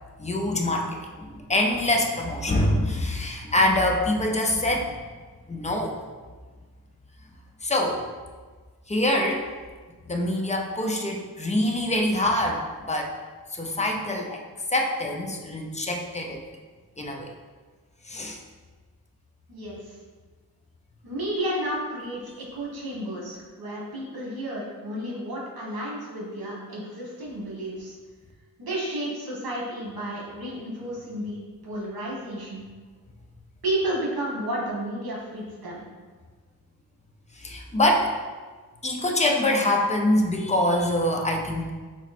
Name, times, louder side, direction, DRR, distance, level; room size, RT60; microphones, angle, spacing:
voice 1, 0.2-1.0 1.3-4.9 5.5-5.9 7.6-8.0 8.9-9.4 10.1-13.1 13.5-14.4 14.7-16.4 17.0-17.3 18.1-18.4 37.4-38.1 38.8-41.7, left 1 dB, 20° left, 1 dB, 0.4 m, -24 dB
voice 2, 19.5-20.0 21.0-27.9 28.6-32.7 33.6-35.8, right 1 dB, 70° right, -4 dB, 1.4 m, -32 dB
4.1 x 3.0 x 4.1 m, 1.4 s
wide cardioid pair, 155°, 37 cm